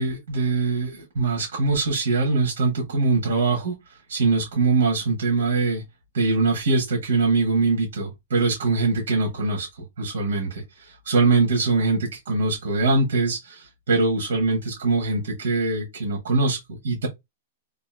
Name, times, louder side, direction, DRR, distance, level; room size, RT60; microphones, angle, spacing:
voice 1, 0.0-3.7 4.1-5.8 6.1-9.7 10.0-17.1, right 3 dB, 80° right, 1.1 m, -23 dB
2.8 x 2.4 x 2.3 m
supercardioid pair, 165°, 0 cm